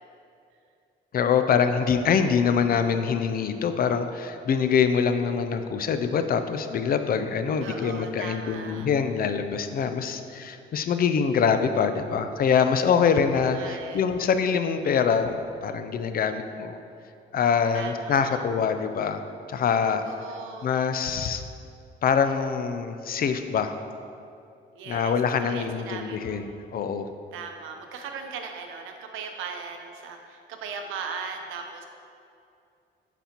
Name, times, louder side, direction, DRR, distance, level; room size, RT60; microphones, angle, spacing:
voice 1, 1.1-16.8 17.3-19.2 19.5-20.0 20.6-21.4 22.0-23.7 24.9-27.1, left 6 dB, 50° left, 9 dB, 0.4 m, -24 dB
voice 2, 7.6-8.9 13.3-14.0 17.7-18.4 20.0-20.7 24.7-25.1 25.4-26.5 27.3-31.8, right 5 dB, 90° right, 4 dB, 0.6 m, -38 dB
9.0 x 4.1 x 2.9 m, 2.5 s
cardioid pair, 90°, 20 cm